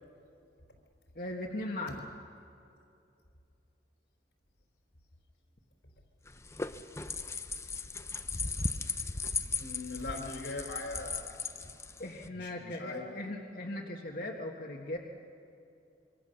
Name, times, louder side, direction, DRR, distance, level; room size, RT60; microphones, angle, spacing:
voice 1, 1.2-2.1 12.0-15.0, left 1 dB, 55° left, -1 dB, 1.7 m, -39 dB
sound 1, 6.3-12.3, left 4 dB, 15° left, 0.7 m, -37 dB
voice 2, 9.6-11.3 12.3-13.0, left 3 dB, 90° left, 3 dB, 4.3 m, -40 dB
27.0 x 24.5 x 6.9 m, 2.6 s
head